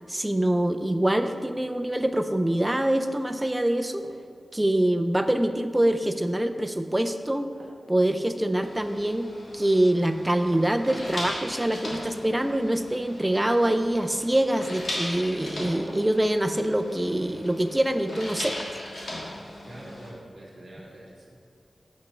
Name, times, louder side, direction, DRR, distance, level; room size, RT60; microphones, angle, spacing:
voice 1, 0.1-4.0 4.5-7.5 7.9-18.7, right 1 dB, 10° right, 7 dB, 0.4 m, -25 dB
sound 1, 4.0-4.4 6.5-6.7 7.6-8.0 9.4-9.8 10.5-11.0 12.6-12.7 13.6-14.1 15.9-16.3 16.7-16.8, right 1 dB, 55° right, 1.6 m, -46 dB
sound 2, 8.6-20.1, left 1 dB, 75° left, 1.7 m, -38 dB
voice 2, 19.6-21.4, right 1 dB, 40° right, -4 dB, 1.8 m, -45 dB
7.4 x 4.3 x 6.0 m, 2.3 s
wide cardioid pair, 120°, 0 cm